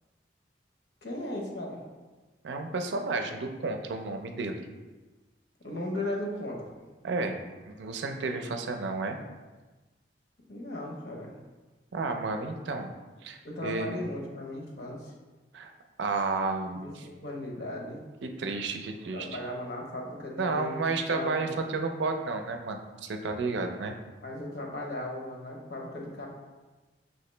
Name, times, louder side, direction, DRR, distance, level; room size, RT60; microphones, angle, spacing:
voice 1, 1.0-1.8 5.6-6.8 10.5-11.3 13.4-15.1 16.7-18.0 19.1-21.6 24.2-26.3, left 1 dB, 65° left, -1 dB, 0.9 m, -37 dB
voice 2, 2.4-4.5 7.0-9.2 11.9-12.9 13.2-13.9 15.5-15.7 16.0-17.1 18.2-19.3 20.4-23.9, right 3 dB, 80° right, 5 dB, 0.4 m, -32 dB
5.7 x 2.9 x 3.2 m, 1.2 s
head